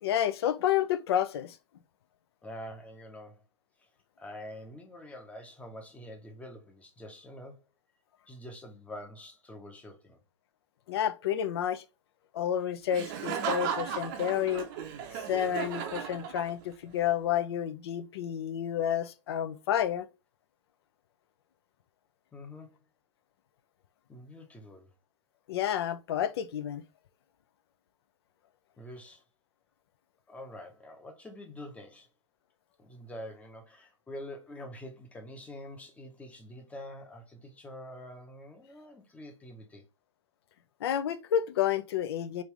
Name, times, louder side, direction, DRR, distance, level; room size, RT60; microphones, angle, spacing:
voice 1, 0.0-1.6 10.9-11.8 12.3-14.7 15.1-20.1 25.5-26.8 40.8-42.4, left 10 dB, 55° left, 0.4 m, -30 dB
voice 2, 2.4-3.4 3.8-3.9 4.2-7.6 8.3-10.2 22.3-22.8 24.1-24.9 28.8-29.2 30.3-32.1 32.8-39.8, left 1 dB, 10° left, 0.7 m, -46 dB
Laughter, 12.9-16.8, right 8 dB, 45° right, 0.6 m, -35 dB
3.3 x 2.5 x 3.1 m
figure-of-eight pair, 110°, 16 cm